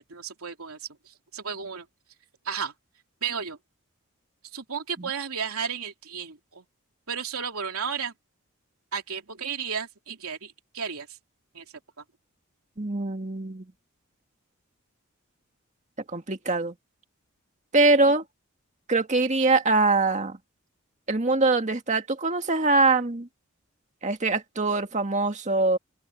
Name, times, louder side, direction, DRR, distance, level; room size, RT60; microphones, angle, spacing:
voice 1, 0.0-1.9 2.4-2.7 3.2-3.6 4.5-6.6 7.1-8.1 8.9-11.2 11.5-11.6 12.0-12.1 17.8-18.1, right 6 dB, 85° right, 3.1 m, -33 dB
voice 2, 12.8-13.6 16.1-16.7 17.7-18.2 18.9-20.4 21.1-23.3 24.0-25.8, right 3 dB, 35° right, 1.9 m, -23 dB
open air
head